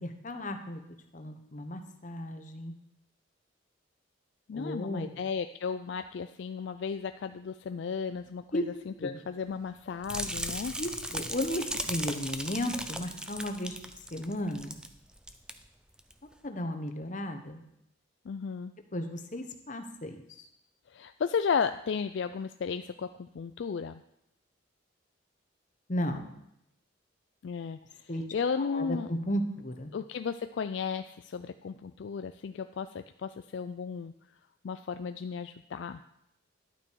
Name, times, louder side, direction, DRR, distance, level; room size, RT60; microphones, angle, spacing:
voice 1, 0.0-0.8 1.1-2.7 4.5-5.2 8.5-8.6 9.0-9.2 10.8-13.8 14.1-14.8 16.4-17.6 18.9-20.5 25.9-26.3 28.1-28.2 28.6-29.9, equal, 40° left, 6 dB, 1.0 m, -34 dB
voice 2, 4.5-10.7 18.3-18.7 20.9-24.0 27.4-27.8 28.3-29.1 29.9-34.1 34.6-36.0, left 6 dB, 60° left, 9 dB, 0.3 m, -34 dB
sound 1, 10.0-14.9 15.2-15.5 16.0-16.1, right 1 dB, 5° right, 0.4 m, -37 dB
11.0 x 8.8 x 4.6 m, 0.80 s
head